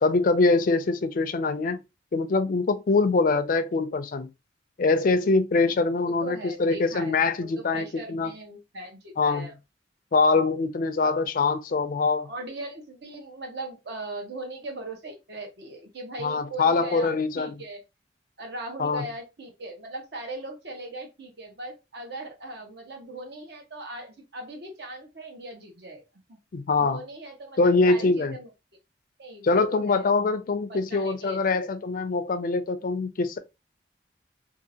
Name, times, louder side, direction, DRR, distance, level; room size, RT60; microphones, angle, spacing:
voice 1, 0.0-1.8 2.1-4.3 4.8-8.3 9.2-9.5 10.1-12.3 16.2-17.6 18.8-19.1 26.5-27.0 27.6-28.4 29.4-33.4, left 3 dB, 50° left, 0.4 m, -23 dB
voice 2, 6.0-9.5 11.0-11.1 12.2-17.8 18.4-26.0 26.3-26.4 26.8-28.5 29.2-30.3 30.7-31.4, right 1 dB, 65° right, 1.0 m, -39 dB
2.7 x 2.5 x 2.7 m
head